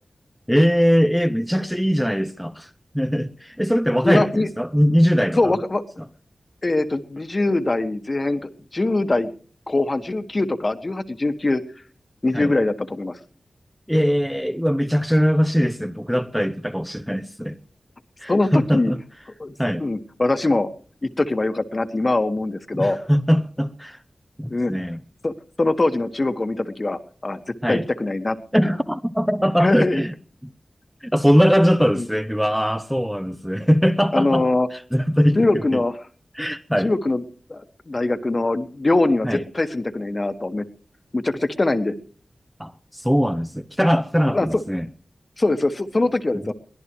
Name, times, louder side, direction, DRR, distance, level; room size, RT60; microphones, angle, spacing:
voice 1, 0.5-2.7 2.9-5.6 12.3-12.5 13.9-17.6 18.2-19.0 19.6-19.9 22.7-24.0 24.4-25.0 27.6-27.9 28.5-30.1 31.0-34.5 34.7-35.4 35.7-35.8 36.3-36.9 39.2-39.4 42.6-44.9 46.3-46.5, equal, ahead, 0.8 m, -21 dB
voice 2, 4.0-4.5 5.4-5.8 6.6-9.3 9.7-11.6 12.2-13.2 18.3-18.9 19.4-19.5 19.8-20.7 21.0-23.0 24.5-24.7 25.2-25.3 25.6-27.4 27.7-28.4 28.6-28.7 29.6-30.0 31.9-32.1 34.1-34.7 35.3-36.0 36.8-37.2 37.5-40.6 41.1-41.9 44.3-44.6 45.4-46.5, left 2 dB, 35° left, 1.6 m, -22 dB
23.0 x 19.0 x 3.1 m
wide cardioid pair, 95°, 0 cm